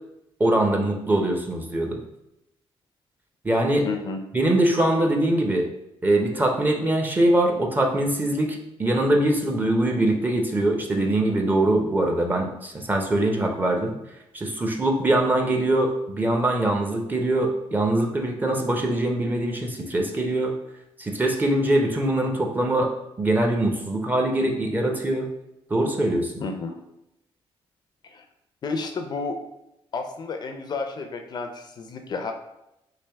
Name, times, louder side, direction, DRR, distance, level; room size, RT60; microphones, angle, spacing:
voice 1, 0.4-2.0 3.4-3.9 4.3-5.7 6.0-13.9 14.3-20.5 21.0-22.9 23.2-25.3 25.7-26.3, right 1 dB, 20° right, 2 dB, 0.6 m, -23 dB
voice 2, 3.8-4.2 26.4-26.8 28.1-28.3 28.6-29.4 29.9-32.3, left 4 dB, 45° left, 5 dB, 0.4 m, -31 dB
3.3 x 2.5 x 3.4 m, 0.86 s
cardioid pair, 105°, 10 cm